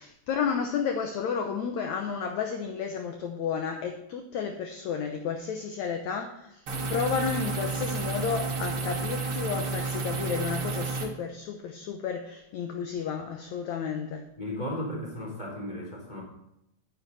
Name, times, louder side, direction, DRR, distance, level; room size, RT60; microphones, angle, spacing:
voice 1, 0.0-6.6 6.9-14.2, left 6 dB, 70° left, 4 dB, 1.8 m, -32 dB
sound 1, 6.7-11.1, right 3 dB, 45° right, 2.0 m, -31 dB
voice 2, 14.4-16.2, left 1 dB, 10° left, -4 dB, 3.7 m, -35 dB
10.5 x 9.6 x 4.1 m, 0.81 s
omnidirectional pair, 4.3 m